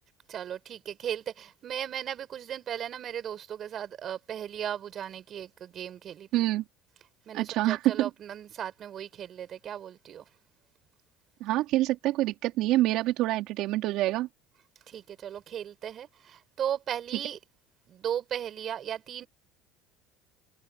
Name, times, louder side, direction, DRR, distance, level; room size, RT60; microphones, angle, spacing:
voice 1, 0.3-6.4 7.3-10.2 14.9-17.4 17.9-19.3, right 9 dB, 40° right, 5.1 m, -36 dB
voice 2, 6.3-6.6 7.3-8.1 11.4-14.3, right 16 dB, 60° right, 3.9 m, -26 dB
cardioid pair, 135°, 0 cm